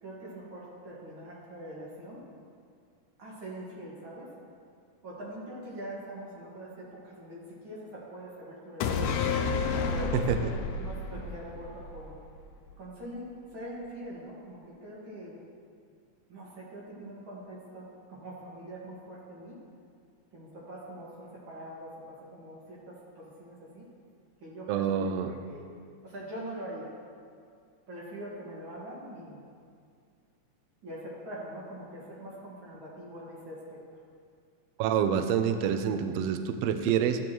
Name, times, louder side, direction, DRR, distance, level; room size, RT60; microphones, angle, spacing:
voice 1, 0.0-2.2 3.2-4.3 5.0-9.2 9.9-12.2 12.8-15.4 16.3-19.6 20.3-23.9 24.4-25.1 25.5-25.7 26.0-26.9 27.9-29.4 30.8-33.8, right 1 dB, 45° right, -5 dB, 2.4 m, -43 dB
sound 1, 8.8-12.4 12.7-12.8, left 5 dB, 85° left, 2.0 m, -30 dB
voice 2, 24.7-25.3 34.8-37.2, right 8 dB, 80° right, 8 dB, 1.4 m, -27 dB
13.5 x 9.8 x 3.1 m, 2.2 s
omnidirectional pair, 3.5 m